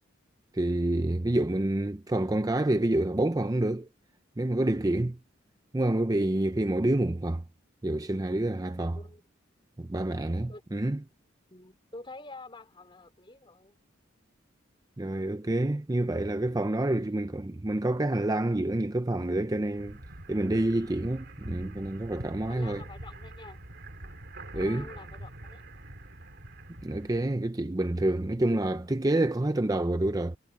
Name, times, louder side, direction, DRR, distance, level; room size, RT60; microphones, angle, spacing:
voice 1, 0.5-3.9 4.4-5.2 5.7-7.4 7.8-9.0 9.8-11.0 15.0-20.0 20.3-22.8 24.5-24.9 26.8-30.4, right 1 dB, 20° right, 0.6 m, -28 dB
voice 2, 11.5-13.8 16.8-17.4 20.7-21.0 22.5-23.6 24.5-25.6, left 2 dB, 25° left, 3.7 m, -48 dB
sound 1, 19.7-27.3, right 1 dB, 60° right, 2.8 m, -45 dB
head